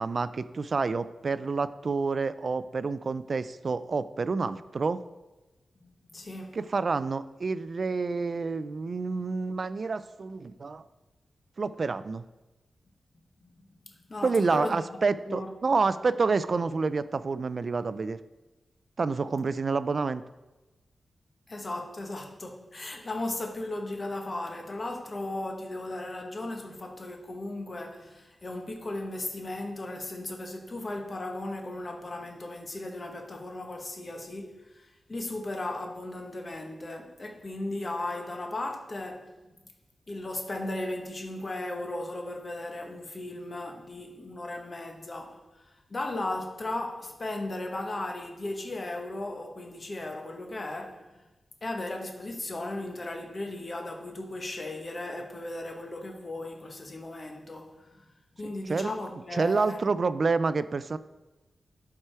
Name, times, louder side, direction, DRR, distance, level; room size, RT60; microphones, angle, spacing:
voice 1, 0.0-5.0 6.5-10.9 11.6-12.2 14.2-18.2 19.0-20.2 58.4-58.9 59.3-61.0, right 4 dB, 45° right, 0.3 m, -28 dB
voice 2, 5.8-6.6 14.1-14.8 15.3-15.7 21.5-39.3 40.1-45.6 45.9-51.1 51.6-58.1 58.3-59.8, left 2 dB, 30° left, 1.0 m, -36 dB
11.0 x 4.8 x 4.4 m
wide cardioid pair, 150°, 0 cm